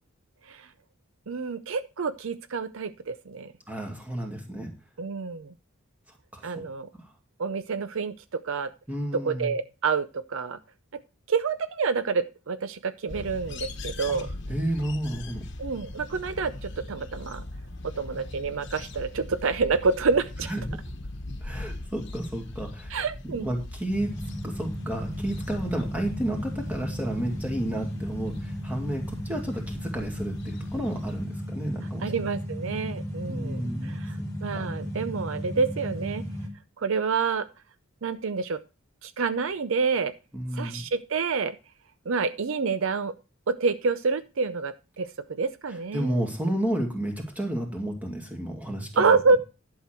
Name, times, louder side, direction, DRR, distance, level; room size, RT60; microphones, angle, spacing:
voice 1, 1.3-3.5 5.0-5.5 6.4-6.9 7.4-8.7 9.1-10.6 11.3-14.3 15.6-17.4 17.8-20.5 22.9-23.5 32.0-36.2 36.8-37.5 38.0-38.6 39.0-40.1 40.5-41.6 42.1-43.1 43.5-46.2 49.0-49.4, right 4 dB, 65° right, 12 dB, 0.5 m, -28 dB
voice 2, 3.7-4.7 6.3-6.6 8.9-9.5 14.5-15.4 20.4-20.8 21.4-22.9 23.2-24.2 24.4-32.1 33.3-34.3 34.5-34.7 40.3-40.9 45.9-49.1, right 1 dB, 5° right, 1 dB, 2.2 m, -31 dB
sound 1, 13.1-31.3, left 2 dB, 55° left, 1.1 m, -40 dB
sound 2, 23.9-36.5, equal, 15° left, 1.8 m, -35 dB
11.5 x 6.5 x 4.4 m, 0.31 s
head